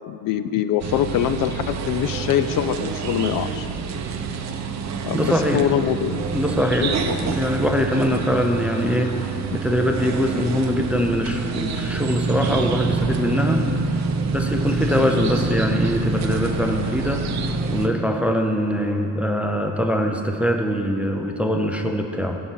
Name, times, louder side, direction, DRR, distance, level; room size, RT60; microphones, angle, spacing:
voice 1, 0.0-3.7 5.0-6.2 6.8-7.2, left 10 dB, 60° left, 11 dB, 0.4 m, -23 dB
sound 1, 0.8-17.9, right 4 dB, 45° right, 0.7 m, -26 dB
voice 2, 5.1-5.7 6.3-13.7 14.2-17.2 17.7-22.4, equal, 5° right, 3 dB, 0.4 m, -23 dB
14.0 x 5.5 x 6.2 m, 2.9 s
cardioid pair, 180°, 38 cm